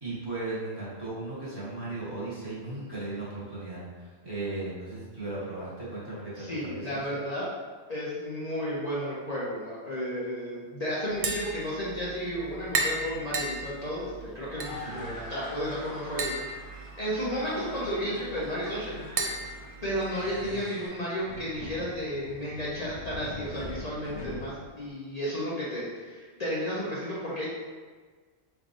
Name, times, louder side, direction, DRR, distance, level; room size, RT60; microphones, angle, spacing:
voice 1, 0.0-7.0 14.7-15.1 20.4-20.7, right 2 dB, 20° right, -10 dB, 1.3 m, -37 dB
voice 2, 6.4-7.4 7.9-16.4 17.0-19.0 19.8-27.5, equal, 40° left, -8 dB, 0.8 m, -33 dB
Tap, 11.1-20.5, right 3 dB, 60° right, 0.4 m, -36 dB
sound 1, 13.8-20.9, left 1 dB, 55° left, 1.4 m, -46 dB
Subway metro underground, 17.4-24.9, left 1 dB, 85° left, 1.0 m, -43 dB
4.9 x 3.4 x 2.5 m, 1.5 s
omnidirectional pair, 1.1 m